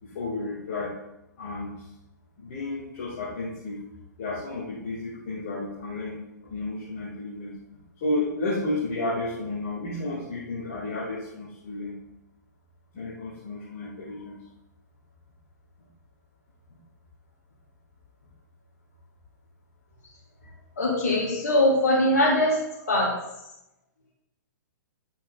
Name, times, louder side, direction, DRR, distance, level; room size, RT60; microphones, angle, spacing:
voice 1, 0.0-0.9 1.4-1.9 2.4-3.8 4.2-6.2 6.4-7.6 8.0-12.0 12.9-14.5, left 2 dB, 45° left, -6 dB, 1.8 m, -32 dB
voice 2, 20.8-22.6 22.9-23.1, left 1 dB, 65° left, -7 dB, 2.3 m, -21 dB
9.5 x 9.1 x 2.3 m, 0.91 s
figure-of-eight pair, 110°, 10 cm